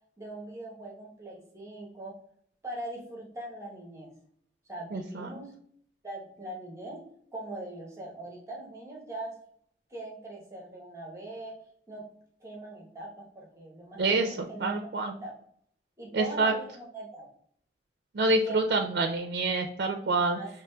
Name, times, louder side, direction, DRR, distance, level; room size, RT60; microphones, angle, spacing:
voice 1, 0.2-2.2 2.6-4.1 4.7-5.5 6.0-7.0 7.3-9.4 9.9-11.6 11.9-12.1 12.4-14.7 15.0-15.3 16.0-17.3 18.4-18.6 20.3-20.5, right 1 dB, 15° right, -2 dB, 0.9 m, -41 dB
voice 2, 4.9-5.4 14.0-14.3 14.6-15.1 16.1-16.5 18.1-20.4, right 3 dB, 60° right, 4 dB, 0.4 m, -27 dB
6.1 x 3.0 x 2.2 m, 0.64 s
head